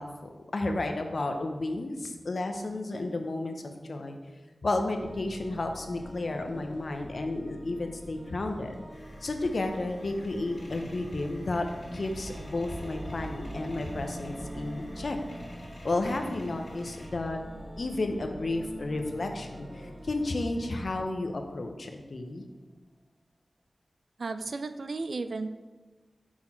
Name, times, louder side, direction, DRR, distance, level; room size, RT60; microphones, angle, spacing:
voice 1, 0.0-3.5 3.8-4.2 4.6-8.7 9.2-15.2 15.8-17.4 17.8-22.4, left 2 dB, 65° left, 5 dB, 0.6 m, -32 dB
sound 1, 5.0-21.0, equal, 45° right, 1.3 m, -46 dB
sound 2, 8.9-17.1, equal, 85° left, 2.0 m, -50 dB
sound 3, 11.5-21.6 21.9-22.0, right 1 dB, 15° right, 0.6 m, -46 dB
voice 2, 24.2-25.5, right 3 dB, 75° right, 10 dB, 0.3 m, -34 dB
5.8 x 4.4 x 4.3 m, 1.3 s
wide cardioid pair, 75°, 0 cm